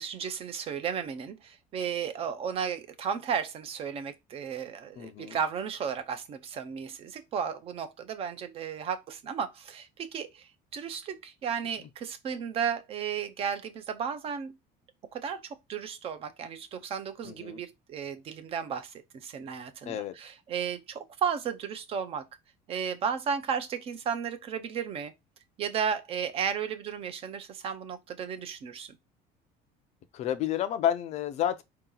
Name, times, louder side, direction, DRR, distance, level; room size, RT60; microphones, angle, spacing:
voice 1, 0.0-14.5 15.1-22.3 22.7-25.1 25.6-28.9, right 7 dB, 35° right, 0.6 m, -34 dB
voice 2, 5.0-5.4 17.2-17.6 19.9-20.1 30.1-31.6, left 10 dB, 40° left, 0.5 m, -30 dB
4.7 x 2.9 x 3.7 m
cardioid pair, 175°, 18 cm